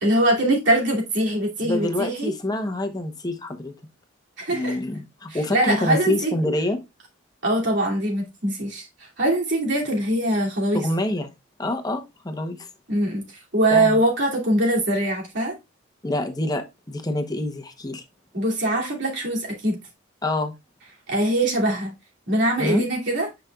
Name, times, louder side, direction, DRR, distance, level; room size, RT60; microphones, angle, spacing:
voice 1, 0.0-2.3 4.4-4.8 5.3-6.3 7.4-8.9 9.2-10.8 12.9-13.2 13.5-15.5 18.3-19.8 21.1-21.9 22.3-23.3, right 1 dB, 60° right, 2.7 m, -22 dB
voice 2, 1.6-3.7 4.5-6.8 10.7-11.3 11.6-12.7 13.7-14.0 16.0-18.0 20.2-20.5 22.6-22.8, left 1 dB, 20° left, 0.9 m, -26 dB
9.6 x 5.1 x 2.4 m
head